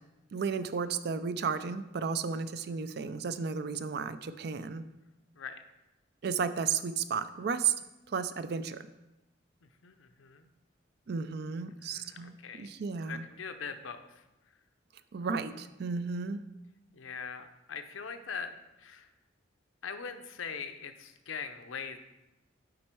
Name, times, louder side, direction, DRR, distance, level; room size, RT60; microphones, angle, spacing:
voice 1, 0.3-4.9 6.2-7.7 8.1-8.9 11.1-13.2 15.1-16.4, right 5 dB, 55° right, 12 dB, 0.4 m, -33 dB
voice 2, 9.6-10.5 11.6-12.7 13.1-14.6 15.2-15.3 16.9-18.5 18.8-19.1 19.8-22.0, left 6 dB, 85° left, 8 dB, 0.6 m, -42 dB
7.6 x 5.3 x 4.5 m, 0.96 s
head